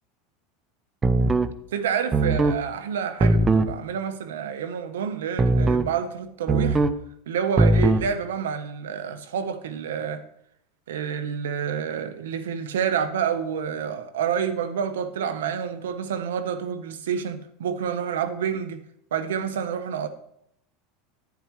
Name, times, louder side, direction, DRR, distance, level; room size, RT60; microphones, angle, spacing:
sound 1, 1.0-1.5 2.1-2.6 3.2-3.7 5.4-5.9 6.5-7.0 7.6-8.1, right 2 dB, 20° right, 0.7 m, -20 dB
voice 1, 1.7-6.8 7.3-10.2 10.9-18.8 19.1-20.1, right 7 dB, 85° right, 11 dB, 1.0 m, -28 dB
10.5 x 9.7 x 3.2 m, 0.73 s
hypercardioid pair, 100°, 0 cm